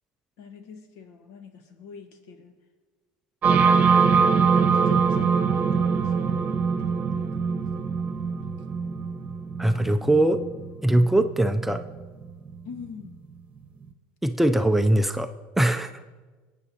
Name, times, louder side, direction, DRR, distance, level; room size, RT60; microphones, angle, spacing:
voice 1, 0.4-2.5 3.7-8.4 12.6-13.2, left 5 dB, 70° left, 6 dB, 1.4 m, -45 dB
sound 1, 3.4-13.1, right 5 dB, 30° right, 1.0 m, -23 dB
voice 2, 9.6-10.4 10.8-11.8 14.2-15.3 15.6-16.0, right 1 dB, 5° right, 7 dB, 0.4 m, -21 dB
23.5 x 9.1 x 2.9 m, 1.4 s
supercardioid pair, 120°, 5 cm